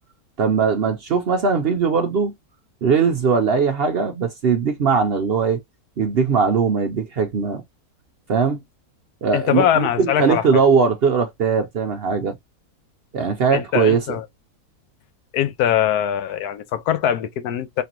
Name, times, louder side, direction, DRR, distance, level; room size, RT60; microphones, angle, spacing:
voice 1, 0.4-2.3 2.8-5.6 6.0-7.6 8.3-8.6 9.2-12.3 13.1-14.0, right 5 dB, 65° right, 0.6 m, -20 dB
voice 2, 9.3-10.6 13.5-14.2 15.3-17.8, left 10 dB, 75° left, 1.1 m, -22 dB
3.9 x 3.3 x 2.9 m
omnidirectional pair, 1.7 m